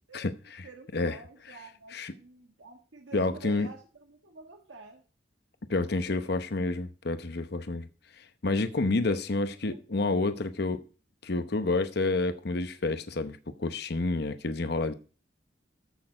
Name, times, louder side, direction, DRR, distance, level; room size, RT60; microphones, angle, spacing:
voice 1, 0.6-5.0 6.0-6.3 8.9-9.2 9.5-9.9, right 3 dB, 90° right, 1.6 m, -48 dB
voice 2, 3.1-3.7 5.7-7.9 8.2-10.8 11.2-14.9, left 2 dB, 60° left, 0.9 m, -29 dB
14.0 x 6.6 x 4.9 m
head